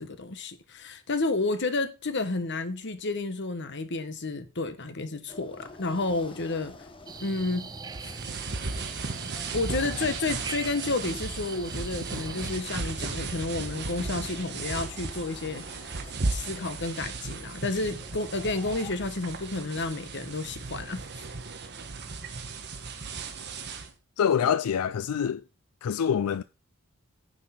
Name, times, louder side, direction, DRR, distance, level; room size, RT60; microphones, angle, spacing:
voice 1, 0.0-6.7 7.2-7.7 8.0-8.1 9.5-15.9 16.3-21.0, left 3 dB, 55° left, 1.2 m, -31 dB
sound 1, 5.3-18.9, left 2 dB, 25° left, 1.0 m, -50 dB
sound 2, 7.1-12.6, right 5 dB, 20° right, 0.3 m, -42 dB
sound 3, 7.9-23.9, right 3 dB, 50° right, 1.2 m, -36 dB
voice 2, 24.2-25.4 25.8-26.4, left 8 dB, 85° left, 0.4 m, -25 dB
9.7 x 4.7 x 5.7 m
head